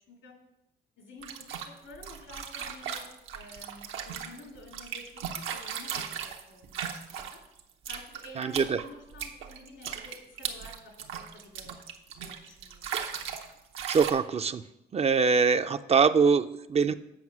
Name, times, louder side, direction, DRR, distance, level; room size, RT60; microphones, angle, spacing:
voice 1, 1.0-3.1 3.3-5.2 5.5-7.4 7.9-11.8 12.2-12.9, left 2 dB, 80° left, 1 dB, 2.5 m, -50 dB
sound 1, 1.2-7.6 7.9-13.5 13.8-14.1, right 8 dB, 90° right, 0.9 m, -37 dB
voice 2, 8.4-8.8 12.8-12.9 13.9-14.6 14.9-16.9, right 5 dB, 30° right, 10 dB, 0.4 m, -23 dB
7.8 x 5.6 x 6.0 m, 0.90 s
cardioid pair, 90°, 20 cm